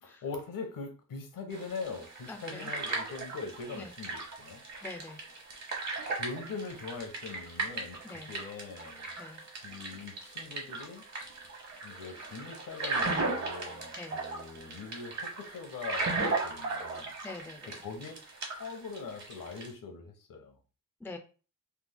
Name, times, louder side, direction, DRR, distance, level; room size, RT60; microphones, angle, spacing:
voice 1, 0.0-4.6 6.1-9.1 9.6-11.0 11.8-17.1 17.8-18.1 18.5-20.6, left 4 dB, 75° left, 5 dB, 0.9 m, -42 dB
sound 1, 1.5-19.7, right 3 dB, 55° right, 1.2 m, -37 dB
voice 2, 2.3-2.7 3.7-3.9 4.8-5.2 8.0-8.3 9.2-9.4 14.0-14.2 17.2-17.8 21.0-21.2, left 3 dB, 5° left, 5 dB, 0.4 m, -44 dB
3.4 x 2.1 x 3.5 m, 0.35 s
wide cardioid pair, 120°, 34 cm